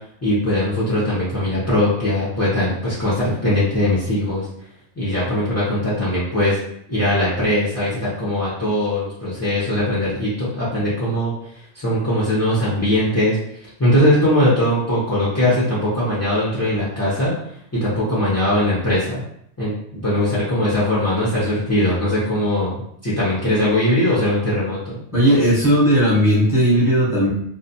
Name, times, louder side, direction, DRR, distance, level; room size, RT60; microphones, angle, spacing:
voice 1, 0.2-4.5 5.0-6.6 6.9-11.3 11.7-13.4 13.8-17.3 17.7-19.2 19.6-25.0, left 1 dB, 20° left, -9 dB, 0.4 m, -20 dB
voice 2, 25.1-27.3, equal, ahead, -8 dB, 0.9 m, -16 dB
2.5 x 2.2 x 2.7 m, 0.70 s
omnidirectional pair, 1.3 m